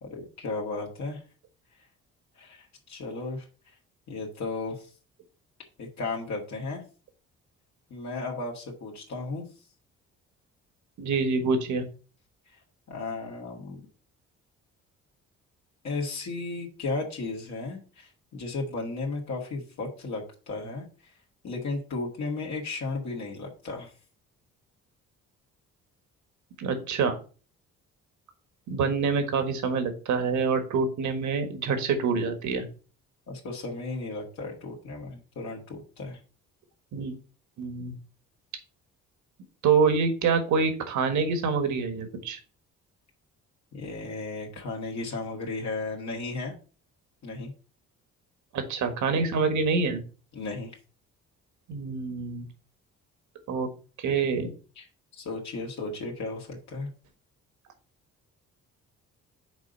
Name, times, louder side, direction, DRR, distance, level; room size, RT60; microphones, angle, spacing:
voice 1, 0.0-1.2 2.4-3.5 4.1-4.9 5.8-6.8 7.9-9.5 12.9-13.8 15.8-20.9 21.4-23.9 33.3-36.2 43.7-46.5 47.2-47.5 50.3-50.8 54.8-54.9 55.2-56.9, left 3 dB, 65° left, -1 dB, 1.9 m, -34 dB
voice 2, 11.0-11.8 26.6-27.2 28.7-32.7 36.9-37.1 37.6-37.9 39.6-42.4 48.5-50.0 51.7-52.5 53.5-53.7 54.0-54.5, right 5 dB, 70° right, 7 dB, 1.6 m, -26 dB
6.2 x 4.0 x 5.3 m, 0.37 s
cardioid pair, 90°, 30 cm